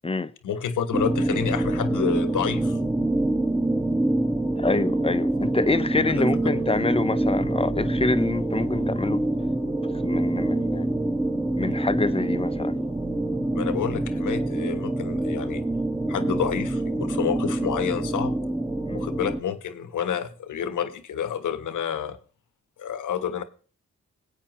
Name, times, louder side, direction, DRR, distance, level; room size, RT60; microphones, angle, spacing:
voice 1, 0.4-2.8 6.2-6.3 13.5-15.6 16.1-18.4 18.9-22.2 22.8-23.4, left 8 dB, 75° left, 1.2 m, -29 dB
sound 1, 0.9-19.4, right 1 dB, 10° right, 1.4 m, -26 dB
voice 2, 4.6-9.2 10.0-10.9 11.6-12.8 18.9-19.1, left 3 dB, 20° left, 0.8 m, -26 dB
19.5 x 8.4 x 3.1 m
cardioid pair, 55°, 31 cm